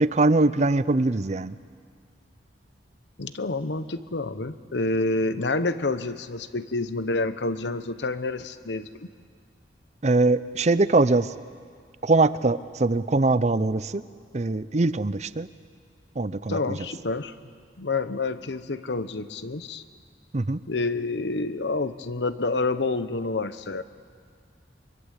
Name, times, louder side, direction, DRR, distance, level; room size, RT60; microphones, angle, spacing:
voice 1, 0.0-1.5 10.0-11.3 12.0-14.0 14.3-15.5 16.2-16.8 20.3-20.6, right 2 dB, 40° right, 15 dB, 0.6 m, -22 dB
voice 2, 3.2-9.1 16.5-17.3 17.8-19.8 20.7-23.8, left 3 dB, 75° left, 12 dB, 1.0 m, -28 dB
23.5 x 23.5 x 8.2 m, 2.1 s
head